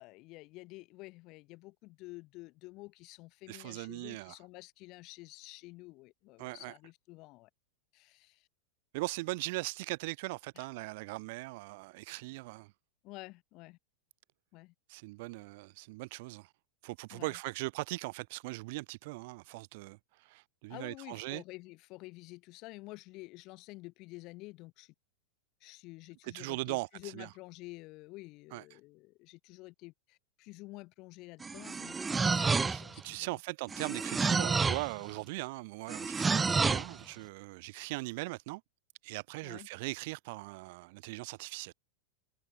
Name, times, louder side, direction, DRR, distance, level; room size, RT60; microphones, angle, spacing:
voice 1, 0.0-7.5 7.9-8.5 10.6-10.7 13.0-13.8 14.5-14.7 17.1-17.3 20.7-24.9 25.6-33.3 39.4-39.7, left 22 dB, 40° left, 6.4 m, -50 dB
voice 2, 3.5-4.4 6.4-6.7 8.9-12.7 14.9-16.5 16.8-21.4 26.2-27.3 28.5-28.8 32.7-38.6 39.0-41.7, right 24 dB, 50° right, 4.4 m, -40 dB
sound 1, 31.4-33.0 33.7-34.9 35.9-36.9, right 4 dB, 15° right, 1.1 m, -29 dB
figure-of-eight pair, 90°, 0 cm